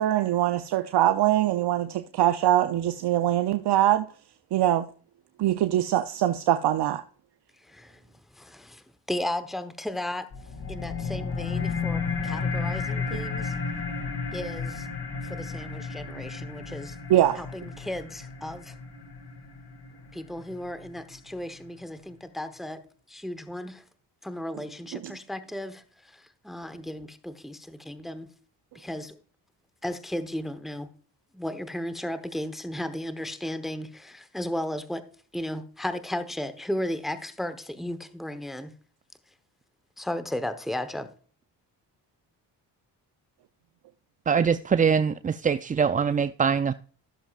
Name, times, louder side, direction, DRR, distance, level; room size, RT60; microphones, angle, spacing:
voice 1, 0.0-4.1 4.5-4.9 5.4-7.0 17.1-17.4, right 12 dB, 60° right, 0.7 m, -23 dB
voice 2, 7.6-8.0 8.3-10.3 10.7-13.6 14.3-14.9 15.2-17.0 17.3-18.8 20.1-22.8 23.1-23.8 24.2-28.3 28.7-29.2 29.8-30.9 31.3-35.0 35.3-38.7 40.0-41.1, left 1 dB, ahead, 1.0 m, -35 dB
sound 1, 10.3-21.3, left 4 dB, 55° left, 2.5 m, -33 dB
voice 3, 44.3-46.7, right 6 dB, 20° right, 0.3 m, -23 dB
14.5 x 7.3 x 2.4 m
supercardioid pair, 60°, 45 cm